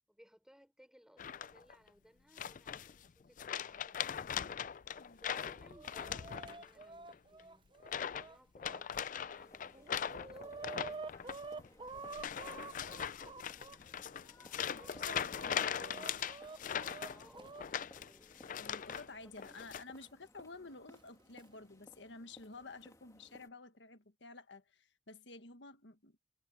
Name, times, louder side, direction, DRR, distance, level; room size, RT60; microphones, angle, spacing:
voice 1, 0.1-4.6 5.2-11.4 11.7-12.1 14.7-16.1 17.1-18.4 19.2-19.6, equal, 5° right, 5.6 m, -64 dB
sound 1, 1.2-1.7 2.4-3.1 3.4-6.8 7.1-7.4 7.8-8.3 8.6-19.1 19.4-19.8, left 8 dB, 45° left, 0.4 m, -40 dB
Chicken rooster, 5.3-8.8 9.4-9.5 9.7-13.8 14.4-17.7 18.9-19.0 20.0-20.1 21.1-21.4, right 4 dB, 25° right, 0.7 m, -49 dB
sound 2, 9.3-23.5, left 1 dB, 20° left, 2.3 m, -62 dB
voice 2, 14.7-16.1 18.5-26.2, left 3 dB, 70° left, 1.5 m, -52 dB
head